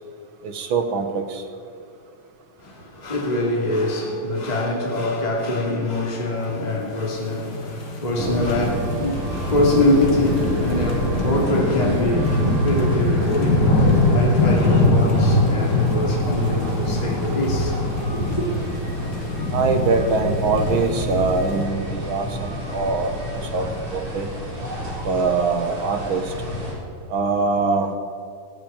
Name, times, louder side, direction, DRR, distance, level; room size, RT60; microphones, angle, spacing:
voice 1, 0.4-1.4 19.5-24.3 25.0-26.3 27.1-28.0, right 4 dB, 65° right, 1.3 m, -23 dB
voice 2, 2.6-13.8 14.1-17.8 18.1-18.5, left 2 dB, 15° left, 2.2 m, -24 dB
sound 1, 7.3-21.6, left 2 dB, 35° left, 2.3 m, -23 dB
sound 2, 8.1-26.7, equal, 45° right, 5.1 m, -28 dB
17.0 x 8.9 x 8.7 m
omnidirectional pair, 3.6 m